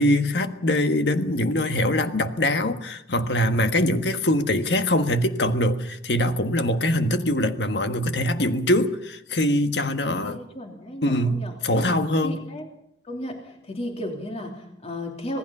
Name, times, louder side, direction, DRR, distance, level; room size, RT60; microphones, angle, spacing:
voice 1, 0.0-10.4 11.0-12.4, left 1 dB, 70° left, 8 dB, 1.5 m, -23 dB
voice 2, 10.0-11.5 12.2-12.7 13.0-15.4, left 1 dB, 35° left, 2 dB, 3.2 m, -34 dB
26.5 x 19.0 x 5.5 m, 0.73 s
head